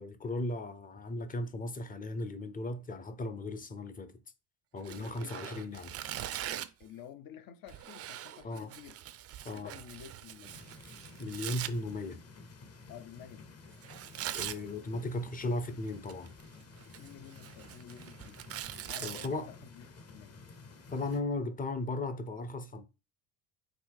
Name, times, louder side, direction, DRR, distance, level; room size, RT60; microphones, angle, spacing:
voice 1, 0.0-4.2 4.7-5.9 8.4-8.7 9.4-9.7 11.2-12.2 14.3-16.3 19.0-19.5 20.9-22.9, left 2 dB, 20° left, 0.6 m, -36 dB
Tearing, 4.8-6.8 7.7-11.7 13.8-14.6 15.9-16.4 16.8-19.3, right 11 dB, 40° right, 0.4 m, -42 dB
voice 2, 4.9-5.6 6.8-8.9 9.5-10.6 12.9-13.5 16.8-18.5 18.9-20.4, left 9 dB, 60° left, 0.7 m, -51 dB
sound 1, 10.5-21.2, left 3 dB, 35° left, 1.0 m, -53 dB
4.1 x 2.8 x 4.7 m
cardioid pair, 105°, 40 cm